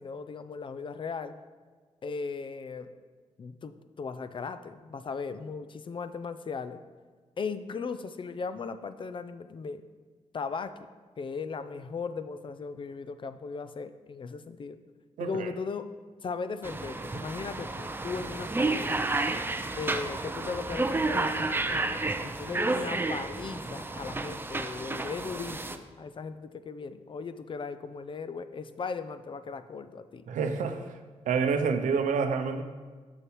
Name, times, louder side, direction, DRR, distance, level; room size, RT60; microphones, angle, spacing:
voice 1, 0.0-1.4 2.0-2.9 3.4-6.8 7.4-9.8 10.3-10.7 11.2-14.8 15.2-15.9 16.2-19.0 19.8-30.2, left 5 dB, 40° left, 12 dB, 0.4 m, -37 dB
voice 2, 15.2-15.5 30.3-30.9 31.3-32.6, right 5 dB, 90° right, 7 dB, 0.6 m, -28 dB
sound 1, 16.6-25.8, right 2 dB, 15° right, 0.4 m, -31 dB
7.3 x 6.5 x 3.1 m, 1.5 s
cardioid pair, 70°, 13 cm